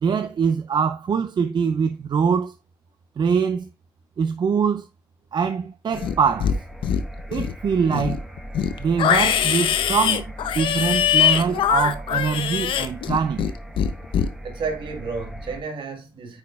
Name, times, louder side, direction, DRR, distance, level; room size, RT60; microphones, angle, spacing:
voice 1, 0.0-2.5 3.2-3.7 4.2-4.9 5.3-6.5 7.3-8.2 8.8-13.5, right 6 dB, 60° right, 0.5 m, -23 dB
Livestock farm animals working animals, 5.9-6.6 6.8-7.5 7.9-13.5 13.8-14.3, left 9 dB, 85° left, 0.5 m, -22 dB
sound 1, 5.9-15.6, equal, ahead, 1.2 m, -38 dB
voice 2, 14.4-16.4, right 4 dB, 80° right, 1.5 m, -31 dB
9.3 x 4.8 x 2.3 m
cardioid pair, 55°, 9 cm